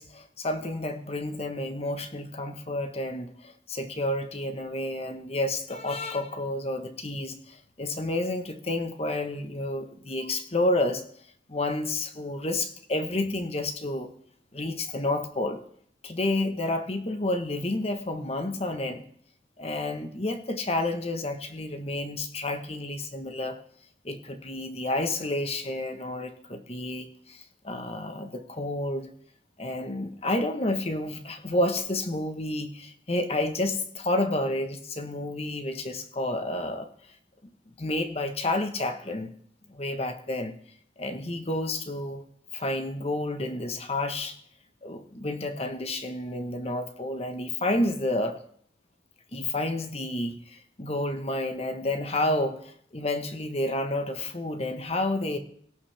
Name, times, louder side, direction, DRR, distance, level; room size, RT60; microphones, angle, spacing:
voice 1, 0.0-11.0 11.5-14.1 14.5-15.6 16.0-19.0 19.6-23.6 24.0-29.1 29.6-36.9 37.4-37.5 37.8-39.3 39.7-40.6 41.0-42.2 42.5-44.4 44.8-48.4 49.3-55.4, left 1 dB, 35° left, 7 dB, 1.3 m, -30 dB
17.5 x 13.0 x 3.5 m, 0.62 s
head